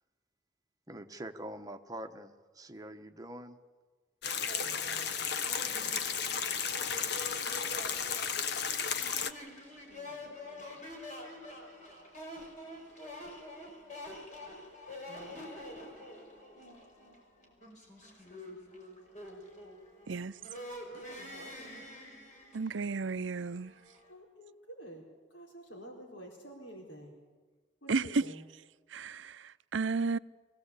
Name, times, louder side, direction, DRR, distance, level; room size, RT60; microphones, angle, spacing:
voice 1, 0.9-3.6, right 1 dB, 20° right, 1.2 m, -44 dB
sound 1, 4.2-9.3, left 6 dB, 60° left, 1.1 m, -33 dB
sound 2, 4.5-24.1, left 1 dB, 40° left, 5.3 m, -47 dB
voice 2, 4.6-6.2 6.5-7.1 9.9-11.1 15.0-15.5 20.9-21.9 24.1-27.2 27.8-28.4, right 1 dB, 90° left, 4.3 m, -51 dB
voice 3, 20.1-20.4 22.5-23.7 27.9-28.2 28.9-30.2, right 4 dB, 90° right, 0.6 m, -32 dB
23.5 x 17.5 x 8.3 m
head